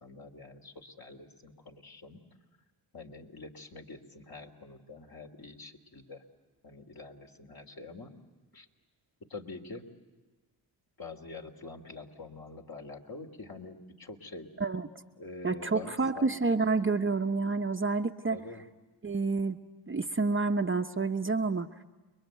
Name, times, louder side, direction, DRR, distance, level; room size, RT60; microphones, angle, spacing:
voice 1, 0.0-2.2 2.9-6.2 6.6-8.1 8.5-8.7 9.3-9.9 11.0-14.5 15.2-16.2 18.3-18.7, left 3 dB, 45° left, 3 dB, 3.3 m, -46 dB
voice 2, 15.4-18.4 19.0-19.6 19.9-21.7, right 4 dB, 25° right, 6 dB, 1.0 m, -29 dB
29.0 x 22.5 x 9.2 m, 1.2 s
supercardioid pair, 50°, 49 cm